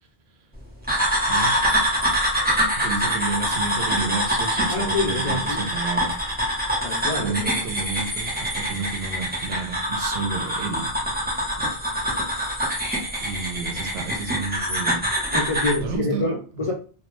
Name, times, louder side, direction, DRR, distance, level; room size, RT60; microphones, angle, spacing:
sound 1, 0.9-15.8, equal, 10° right, 0.6 m, -25 dB
voice 1, 1.3-1.6 2.8-6.2 7.2-11.2 11.6-11.7 13.2-15.1 15.8-16.3, right 4 dB, 85° right, 5 dB, 0.8 m, -31 dB
voice 2, 4.7-5.7 6.8-7.7 15.3-16.7, left 2 dB, 50° left, -1 dB, 0.4 m, -27 dB
2.2 x 2.1 x 3.0 m, 0.36 s
omnidirectional pair, 1.1 m